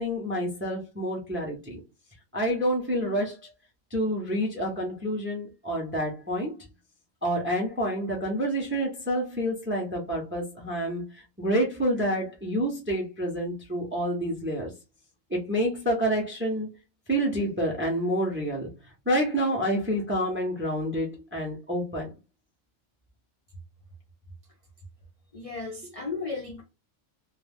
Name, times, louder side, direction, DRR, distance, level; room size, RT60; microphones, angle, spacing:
voice 1, 0.0-1.8 2.3-3.4 3.9-6.6 7.2-11.1 11.4-14.7 15.3-16.7 17.1-22.1, equal, 15° right, 0.4 m, -28 dB
voice 2, 25.3-26.6, left 4 dB, 50° left, 0.4 m, -35 dB
2.3 x 2.2 x 3.3 m
omnidirectional pair, 1.4 m